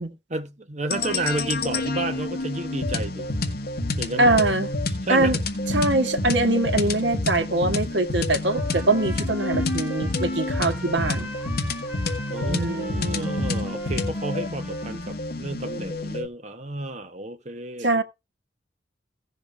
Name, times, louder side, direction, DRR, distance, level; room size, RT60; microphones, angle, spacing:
voice 1, 0.3-3.3 4.0-4.4 5.1-5.3 12.3-18.0, right 2 dB, 40° right, 1.2 m, -31 dB
sound 1, 0.9-16.3, left 2 dB, 60° left, 1.8 m, -28 dB
voice 2, 4.2-4.7 5.1-5.4 5.7-11.3 12.5-13.3 17.8-18.0, right 2 dB, 70° right, 1.5 m, -23 dB
Trumpet, 8.4-15.2, equal, 10° right, 2.4 m, -41 dB
16.5 x 6.8 x 3.4 m
head